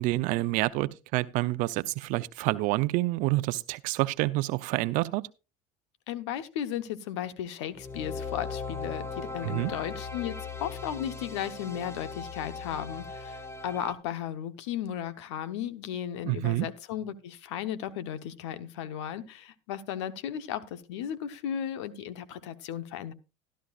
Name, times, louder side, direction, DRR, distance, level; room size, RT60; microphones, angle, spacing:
voice 1, 0.0-5.2 9.4-9.7 16.2-16.7, right 19 dB, 65° right, 0.6 m, -28 dB
voice 2, 6.1-23.1, left 10 dB, 90° left, 0.9 m, -35 dB
sound 1, 7.7-13.9, left 4 dB, 15° left, 1.2 m, -38 dB
12.5 x 12.5 x 2.4 m
supercardioid pair, 110°, 14 cm